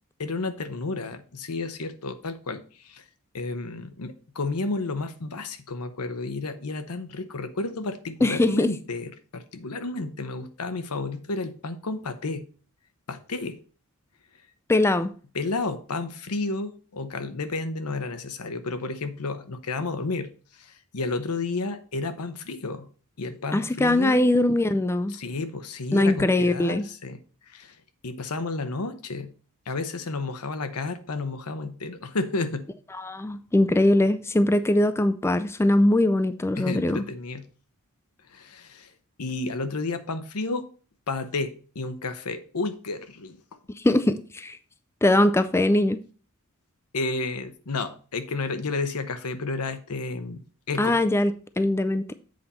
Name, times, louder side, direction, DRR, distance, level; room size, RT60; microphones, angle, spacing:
voice 1, 0.2-3.0 3.3-12.4 13.1-13.6 15.3-22.9 23.2-24.3 25.1-27.2 27.5-27.8 28.0-29.3 29.7-32.7 36.6-37.5 38.3-38.9 39.2-40.7 41.1-43.4 46.9-51.0, left 3 dB, 85° left, 0.9 m, -31 dB
voice 2, 8.2-8.7 14.7-15.1 23.5-25.1 25.9-26.9 33.0-37.0 43.8-44.6 45.0-46.0 50.8-52.1, left 1 dB, 10° left, 0.3 m, -21 dB
7.8 x 4.3 x 5.3 m
head